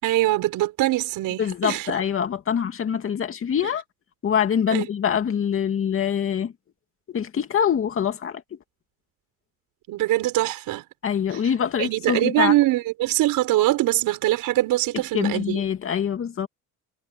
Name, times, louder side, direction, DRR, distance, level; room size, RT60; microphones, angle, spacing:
voice 1, 0.0-2.0 4.7-4.9 9.9-10.8 11.3-11.4 11.8-15.6, right 16 dB, 75° right, 6.2 m, -23 dB
voice 2, 1.4-3.8 4.2-6.5 7.1-8.4 11.0-12.5 15.1-16.5, left 8 dB, 40° left, 2.4 m, -24 dB
cardioid pair, 125°, 34 cm